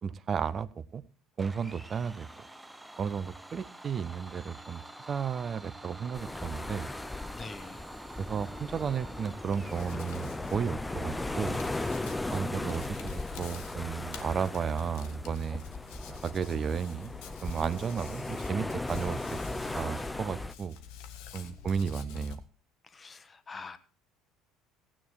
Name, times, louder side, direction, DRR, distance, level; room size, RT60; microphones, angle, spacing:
voice 1, 0.0-1.0 1.4-2.3 3.0-4.8 5.1-6.9 8.2-11.6 12.3-15.6 16.1-17.1 17.4-19.4 19.7-20.8 21.3-22.4, right 6 dB, 40° right, 15 dB, 0.9 m, -33 dB
Domestic sounds home sounds, 1.4-10.1, right 1 dB, 5° right, 1.0 m, -48 dB
sound 1, 6.1-20.5, left 2 dB, 10° left, 0.6 m, -37 dB
voice 2, 7.3-7.8 12.0-12.7 21.3-21.7 22.8-23.8, left 4 dB, 30° left, 12 dB, 1.3 m, -46 dB
Hands, 9.5-22.4, left 8 dB, 70° left, 1.5 m, -47 dB
16.0 x 8.9 x 4.7 m, 0.36 s
hypercardioid pair, 70°, 0 cm